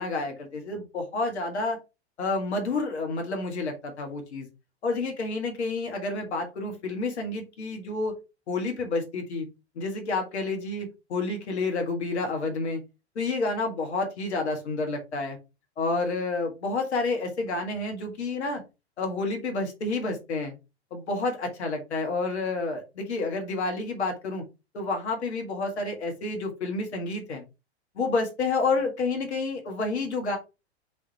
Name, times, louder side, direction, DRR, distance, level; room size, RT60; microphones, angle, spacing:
voice 1, 0.0-1.8 2.2-4.5 4.8-8.1 8.5-9.5 9.8-12.8 13.2-15.4 15.8-18.6 19.0-20.5 20.9-24.4 24.7-27.4 28.0-30.4, left 3 dB, 75° left, 3 dB, 2.0 m, -29 dB
4.8 x 4.6 x 4.2 m, 0.27 s
hypercardioid pair, 100°, 34 cm